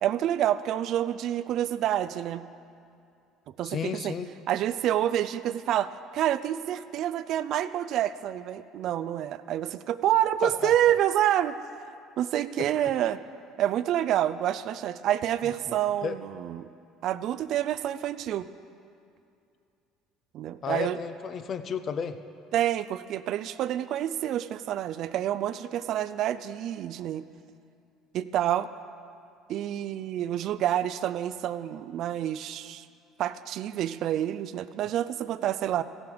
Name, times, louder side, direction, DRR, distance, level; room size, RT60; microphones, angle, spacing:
voice 1, 0.0-2.5 3.6-4.1 4.5-11.6 12.2-13.2 13.6-16.7 17.0-18.5 20.3-21.0 22.5-27.2 28.1-28.7 29.5-32.9 33.2-35.8, right 11 dB, 60° right, 14 dB, 0.4 m, -28 dB
voice 2, 3.6-4.3 10.4-10.7 12.6-12.9 15.4-15.8 16.0-16.2 20.6-22.2, left 7 dB, 45° left, 10 dB, 0.6 m, -33 dB
16.0 x 7.0 x 5.0 m, 2.5 s
supercardioid pair, 100°, 0 cm